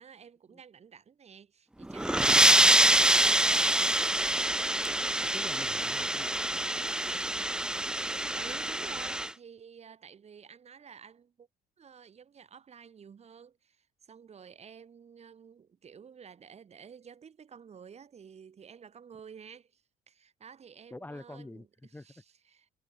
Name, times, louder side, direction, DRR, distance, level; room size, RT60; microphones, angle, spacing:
voice 1, 0.0-3.8 8.3-11.5 11.8-22.7, right 7 dB, 40° right, 5.0 m, -51 dB
sound 1, 1.8-9.3, right 1 dB, 5° right, 0.6 m, -25 dB
voice 2, 4.9-6.7 20.9-22.1, left 2 dB, 10° left, 5.0 m, -46 dB
cardioid pair, 110°, 17 cm